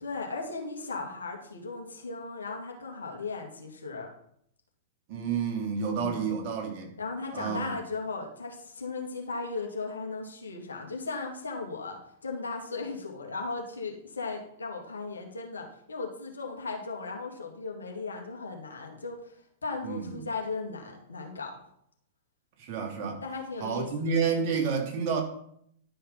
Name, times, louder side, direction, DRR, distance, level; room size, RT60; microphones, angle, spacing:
voice 1, 0.0-4.1 5.9-6.2 7.0-21.5 23.2-23.9, left 4 dB, 80° left, 2 dB, 2.3 m, -37 dB
voice 2, 5.1-6.9 7.3-7.7 19.8-20.2 22.6-23.2 23.6-25.2, right 6 dB, 45° right, 2 dB, 2.6 m, -30 dB
11.5 x 5.6 x 5.4 m, 0.69 s
figure-of-eight pair, 100°, 0 cm